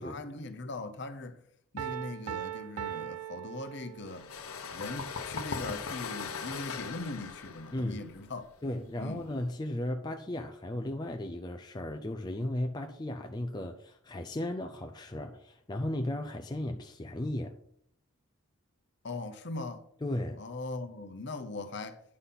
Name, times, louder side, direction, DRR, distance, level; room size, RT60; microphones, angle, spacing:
voice 1, 0.0-1.4 1.7-4.3 4.7-8.4 9.0-9.3 19.0-19.8 20.4-22.0, left 2 dB, 50° left, 0.8 m, -40 dB
Piano, 1.8-4.3, right 10 dB, 90° right, 0.4 m, -39 dB
sound 1, 4.0-9.5, left 5 dB, 85° left, 0.9 m, -39 dB
voice 2, 7.7-8.0 8.6-17.6 20.0-20.4, left 1 dB, 20° left, 0.4 m, -35 dB
9.6 x 4.0 x 5.6 m
head